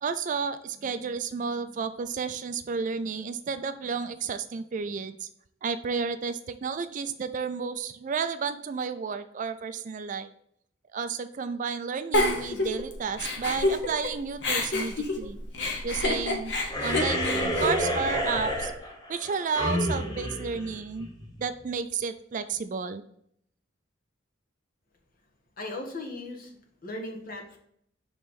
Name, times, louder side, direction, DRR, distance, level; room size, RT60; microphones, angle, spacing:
voice 1, 0.0-5.3 5.6-10.3 10.9-15.4 15.8-16.5 16.8-18.7 19.1-21.1 21.4-23.0, right 5 dB, 40° right, 11 dB, 0.3 m, -32 dB
Giggle, 12.1-14.1 14.4-18.6, left 2 dB, 65° left, 1.0 m, -28 dB
sound 1, 16.7-21.4, equal, 20° left, 0.9 m, -30 dB
voice 2, 25.6-26.5 26.8-27.6, left 2 dB, 50° left, 1 dB, 1.2 m, -37 dB
6.2 x 3.2 x 5.2 m, 0.69 s
head